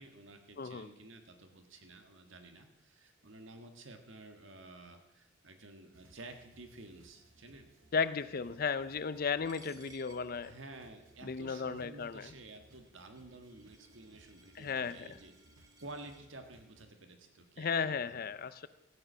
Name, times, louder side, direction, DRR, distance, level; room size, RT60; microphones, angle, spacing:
voice 1, 0.0-7.7 10.4-15.3 15.8-18.5, right 2 dB, 70° right, 6 dB, 1.6 m, -52 dB
voice 2, 0.6-0.9 7.9-10.5 11.2-12.3 14.5-15.2 17.6-18.7, left 5 dB, 45° left, 14 dB, 0.5 m, -35 dB
sound 1, 5.9-16.9, right 1 dB, 90° right, 1.5 m, -64 dB
Coin (dropping), 9.4-16.2, right 3 dB, 20° right, 1.3 m, -63 dB
14.5 x 8.3 x 6.2 m, 0.94 s
head